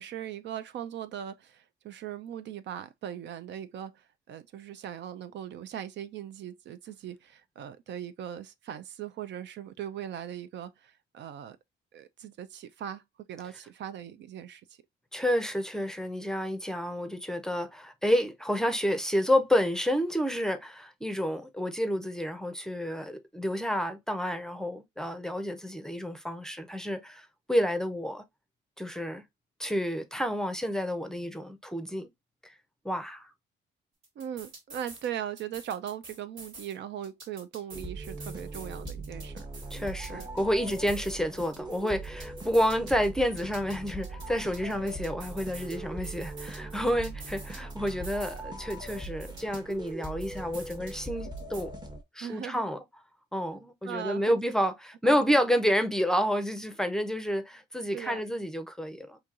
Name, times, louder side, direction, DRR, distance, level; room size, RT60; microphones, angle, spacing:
voice 1, 0.0-11.6 11.9-14.8 34.2-39.5 40.1-40.3 52.2-52.6 53.8-54.4 55.0-55.4 57.9-58.2, right 10 dB, 65° right, 0.4 m, -39 dB
voice 2, 15.1-28.2 28.8-29.2 29.6-32.1 32.8-33.3 39.7-51.7 52.2-52.8 53.3-59.2, equal, 5° left, 0.6 m, -29 dB
sound 1, 34.0-35.1 35.4-36.7 37.0-40.4 40.7-43.1 43.4-45.8 46.0-48.4 48.7-51.1 51.4-51.6, right 3 dB, 85° right, 1.9 m, -48 dB
sound 2, 37.7-52.0, right 2 dB, 20° right, 0.9 m, -40 dB
4.4 x 2.8 x 2.4 m
cardioid pair, 90°, 20 cm